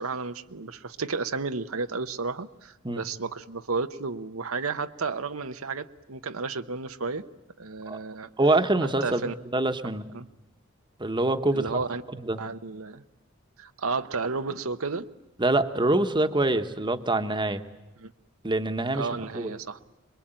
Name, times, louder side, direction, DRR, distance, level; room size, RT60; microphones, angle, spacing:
voice 1, 0.0-7.2 7.6-8.3 8.8-9.3 10.1-10.3 11.5-12.0 12.4-13.0 13.6-15.1 18.0-18.1 18.9-19.8, right 4 dB, 80° right, 8 dB, 1.0 m, -32 dB
voice 2, 8.4-9.2 9.5-10.0 11.0-11.8 12.2-12.4 15.4-17.6 18.4-19.6, right 2 dB, 20° right, 8 dB, 1.2 m, -25 dB
27.0 x 22.0 x 9.0 m, 1.0 s
head